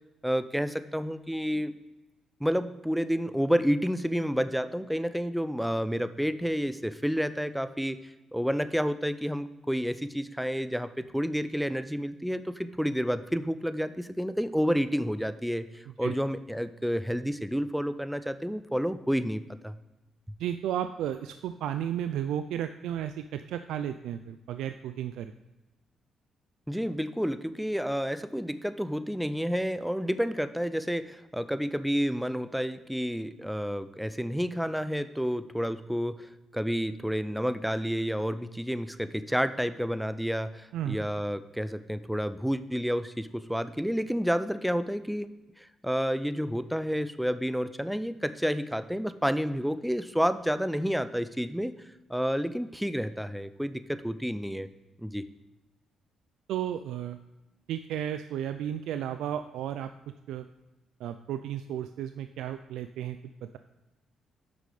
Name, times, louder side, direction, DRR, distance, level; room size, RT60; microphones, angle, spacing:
voice 1, 0.2-1.7 2.4-8.0 8.3-19.7 26.7-45.3 45.6-51.7 52.1-54.7 55.0-55.3, equal, ahead, 13 dB, 0.5 m, -30 dB
voice 2, 20.4-25.3 40.7-41.0 56.5-57.2 57.7-59.9 60.3-60.5 61.0-63.6, right 10 dB, 85° right, 10 dB, 0.3 m, -33 dB
8.4 x 5.9 x 4.9 m, 1.0 s
cardioid pair, 90°, 0 cm